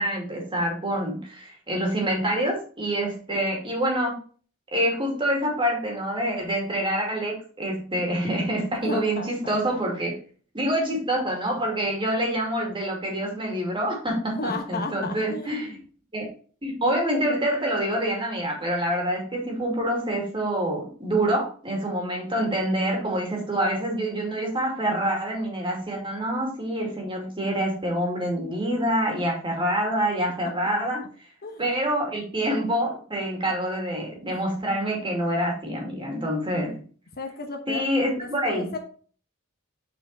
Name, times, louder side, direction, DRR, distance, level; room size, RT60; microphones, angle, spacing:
voice 1, 0.0-4.2 4.7-10.1 10.5-15.8 16.1-16.3 16.6-31.0 31.6-36.8 37.7-38.7, right 1 dB, 25° right, 0 dB, 2.6 m, -26 dB
voice 2, 2.9-3.4 8.8-9.3 9.7-9.8 14.3-15.8 31.4-31.7 37.2-37.9 38.2-38.8, left 2 dB, 45° left, 4 dB, 1.2 m, -34 dB
7.3 x 5.0 x 4.1 m, 0.42 s
head